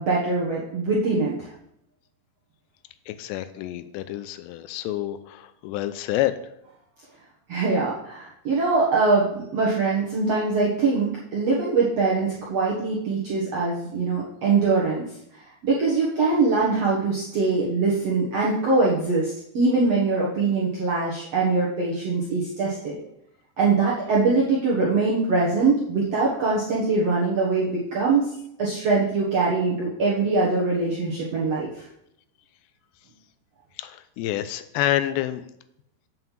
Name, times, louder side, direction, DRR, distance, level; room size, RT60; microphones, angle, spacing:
voice 1, 0.0-1.5 7.5-15.0 15.3-23.0 23.6-28.3 28.6-31.8, right 3 dB, 65° right, -5 dB, 1.6 m, -23 dB
voice 2, 3.1-6.4 33.8-35.5, left 13 dB, 85° left, 12 dB, 2.8 m, -28 dB
7.8 x 5.6 x 7.3 m, 0.77 s
omnidirectional pair, 4.9 m